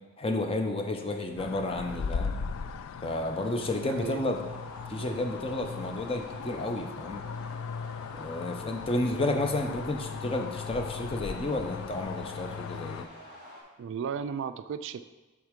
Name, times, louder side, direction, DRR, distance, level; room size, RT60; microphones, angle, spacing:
voice 1, 0.2-2.3 3.0-4.4 4.9-7.2 8.1-13.1, left 2 dB, 30° left, 5 dB, 0.6 m, -31 dB
sound 1, 1.1-13.6, equal, 50° left, 1.6 m, -51 dB
sound 2, 1.4-13.1, left 5 dB, 80° left, 0.4 m, -38 dB
voice 2, 3.5-4.2 13.8-15.0, right 7 dB, 65° right, 12 dB, 0.3 m, -35 dB
7.9 x 3.6 x 5.1 m, 1.2 s
head